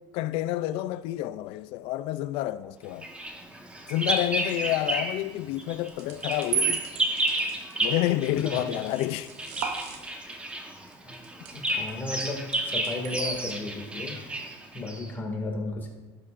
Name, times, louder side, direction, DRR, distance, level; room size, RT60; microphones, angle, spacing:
voice 1, 0.1-3.0 3.9-6.8 7.8-9.3, left 14 dB, 70° left, 0.4 m, -29 dB
Bird vocalization bird call bird song, 3.0-5.3 5.6-15.1, right 1 dB, 10° right, 1.1 m, -32 dB
sound 1, 4.2-4.6 5.9-10.5 10.9-11.9 12.2-13.5, right 7 dB, 80° right, 1.1 m, -34 dB
voice 2, 8.3-8.6 11.1-11.2 11.5-14.1 14.7-15.9, left 2 dB, 20° left, 2.2 m, -34 dB
17.5 x 8.4 x 2.6 m
cardioid pair, 155°, 10 cm